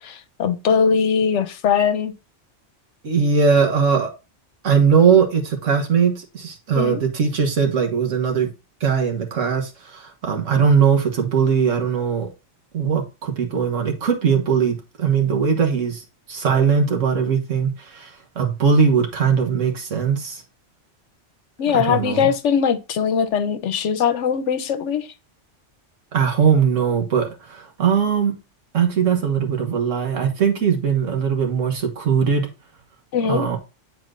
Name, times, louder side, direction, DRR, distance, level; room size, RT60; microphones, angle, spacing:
voice 1, 0.0-2.1 6.8-7.0 21.6-25.1 33.1-33.5, left 7 dB, 75° left, 1.0 m, -21 dB
voice 2, 3.0-4.1 4.6-8.5 8.8-12.3 12.7-20.4 21.7-22.3 26.1-28.3 28.7-32.5 33.3-33.6, right 6 dB, 90° right, 1.7 m, -20 dB
9.2 x 4.3 x 2.4 m
omnidirectional pair, 1.2 m